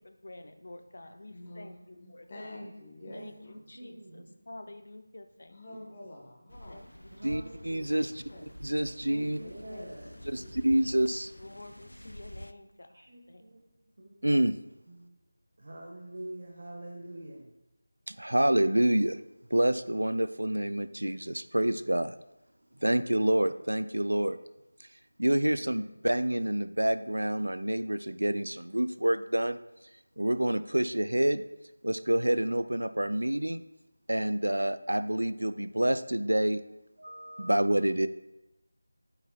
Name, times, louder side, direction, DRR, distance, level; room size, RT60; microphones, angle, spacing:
voice 1, 0.0-2.7 3.1-5.9 6.7-7.4 7.9-8.1 9.1-10.4 11.4-13.4, left 2 dB, 50° left, 8 dB, 0.7 m, -50 dB
voice 2, 1.3-1.7 2.0-3.6 5.5-6.8 8.2-9.3 10.1-11.0, left 1 dB, 30° left, 0 dB, 1.2 m, -48 dB
voice 3, 2.3-2.7 3.0-4.3 7.1-8.1 9.3-10.1 12.9-13.7 14.0-14.3 14.9-15.2 15.6-17.5, right 1 dB, 45° right, -2 dB, 1.1 m, -46 dB
sound 1, 6.5-12.5, equal, 85° left, 0.4 m, -47 dB
voice 4, 7.2-8.2 8.6-9.4 10.3-11.3 14.2-14.6 18.1-19.2 19.5-22.2 22.8-24.4 24.8-31.4 31.8-33.6 34.1-36.6 37.0-38.1, right 1 dB, 70° right, 13 dB, 0.4 m, -28 dB
8.8 x 7.2 x 2.3 m, 0.95 s
figure-of-eight pair, 165°, 0 cm